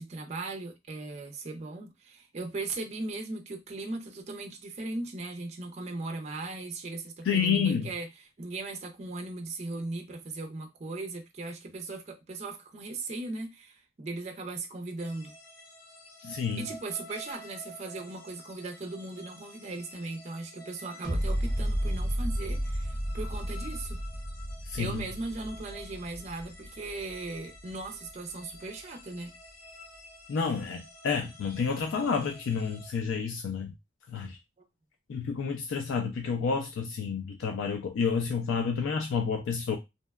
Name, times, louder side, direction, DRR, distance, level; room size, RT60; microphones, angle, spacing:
voice 1, 0.0-15.3 16.6-24.0 24.7-29.3, right 2 dB, 35° right, 0.4 m, -38 dB
voice 2, 7.3-7.9 16.2-16.6 24.7-25.0 30.3-33.7 34.1-34.4 35.1-39.8, left 6 dB, 90° left, 0.3 m, -29 dB
sound 1, 15.0-32.9, left 1 dB, 50° left, 0.7 m, -50 dB
sound 2, 21.0-28.1 28.5-28.6, equal, ahead, 0.9 m, -33 dB
2.7 x 2.1 x 2.2 m
head